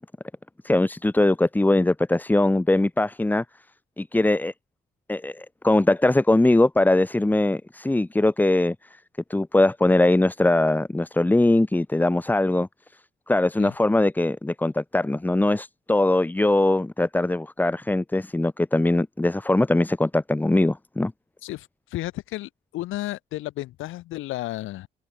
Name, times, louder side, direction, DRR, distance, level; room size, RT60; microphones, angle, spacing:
voice 1, 0.6-3.4 4.0-4.5 5.1-8.8 9.3-12.7 13.3-21.1, left 2 dB, 10° left, 0.7 m, -21 dB
voice 2, 21.4-24.9, left 16 dB, 90° left, 1.5 m, -33 dB
cardioid pair, 90°, 20 cm